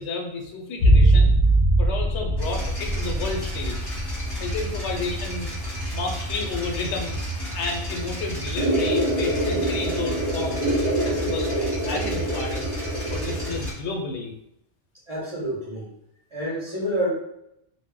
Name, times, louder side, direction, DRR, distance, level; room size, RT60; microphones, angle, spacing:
voice 1, 0.0-1.3 1.8-3.8 4.4-5.6 5.9-7.2 7.5-12.7 13.1-14.3, left 3 dB, 80° left, 1 dB, 0.9 m, -31 dB
sound 1, 0.8-5.0 5.3-5.4, right 1 dB, 60° left, 0.6 m, -20 dB
sound 2, 2.4-13.7, right 1 dB, 25° left, 0.9 m, -31 dB
sound 3, 8.6-13.6, right 1 dB, 50° right, 0.3 m, -26 dB
voice 2, 15.1-15.9 16.3-17.1, equal, 30° right, -7 dB, 0.8 m, -28 dB
2.1 x 2.0 x 3.6 m, 0.79 s
omnidirectional pair, 1.2 m